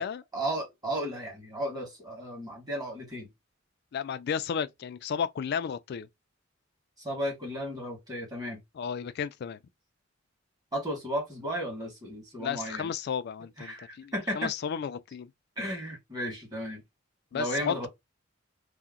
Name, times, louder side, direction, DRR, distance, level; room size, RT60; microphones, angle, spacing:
voice 1, 0.3-3.3 7.0-8.6 10.7-12.9 13.6-14.5 15.6-16.8 17.3-17.9, equal, 20° right, 1.4 m, -34 dB
voice 2, 3.9-6.1 8.8-9.6 12.4-15.3 17.3-17.9, left 7 dB, 55° left, 0.3 m, -33 dB
2.8 x 2.1 x 3.6 m
head